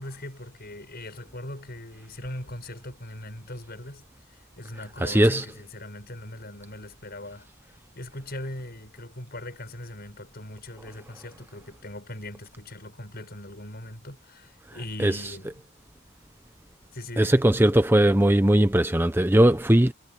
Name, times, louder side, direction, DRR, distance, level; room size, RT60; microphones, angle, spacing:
voice 1, 0.0-4.0 4.3-7.5 8.0-15.7 16.9-17.6, left 1 dB, 45° left, 7.0 m, -40 dB
voice 2, 5.0-5.5 15.0-15.2 17.2-19.9, right 1 dB, 10° right, 0.6 m, -19 dB
head